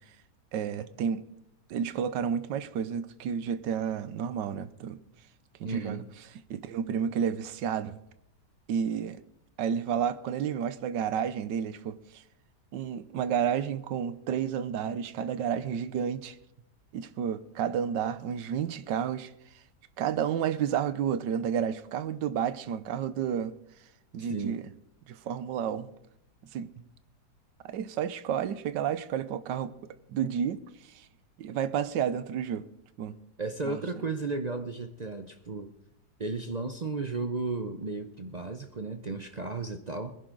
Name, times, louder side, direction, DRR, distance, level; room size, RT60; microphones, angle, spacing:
voice 1, 0.5-1.3 1.7-5.0 5.6-6.0 6.5-8.0 8.7-9.2 9.6-12.0 12.7-16.4 16.9-19.3 20.0-23.5 24.1-24.7 25.1-25.9 26.5-26.7 27.6-29.7 30.1-30.6 31.4-32.7 33.0-33.2 33.6-33.8, right 8 dB, 85° right, 1.4 m, -31 dB
voice 2, 5.6-6.1 24.3-24.6 33.4-35.7 36.2-40.2, right 3 dB, 60° right, 0.4 m, -34 dB
20.5 x 11.0 x 3.9 m
omnidirectional pair, 1.9 m